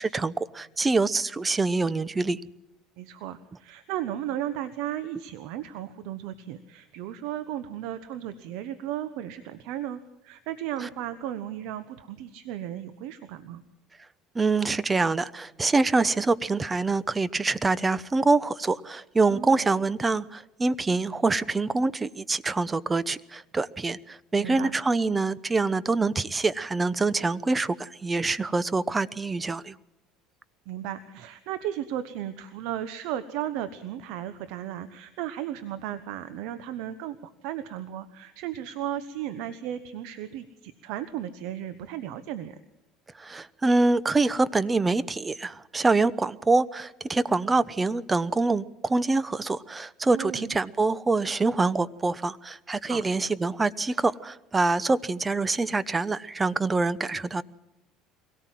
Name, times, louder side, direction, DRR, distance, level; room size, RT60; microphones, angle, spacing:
voice 1, 0.0-2.4 14.3-29.7 43.2-57.4, right 3 dB, 20° right, 0.8 m, -25 dB
voice 2, 3.0-13.6 19.3-19.6 24.4-24.7 30.7-42.6 50.1-50.5 52.9-53.0, right 11 dB, 75° right, 1.1 m, -35 dB
23.5 x 17.5 x 7.6 m
supercardioid pair, 95°, 0 cm